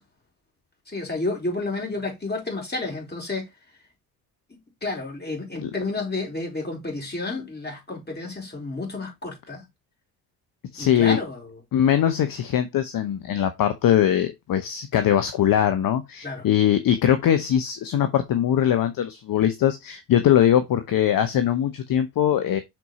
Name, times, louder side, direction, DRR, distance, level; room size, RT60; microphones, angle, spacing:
voice 1, 0.9-3.4 4.8-9.6 10.8-11.5 16.2-16.4, left 2 dB, 20° left, 4.3 m, -30 dB
voice 2, 10.7-11.2 11.7-22.6, left 10 dB, 50° left, 0.9 m, -21 dB
6.2 x 4.2 x 4.1 m
hypercardioid pair, 55°, 45 cm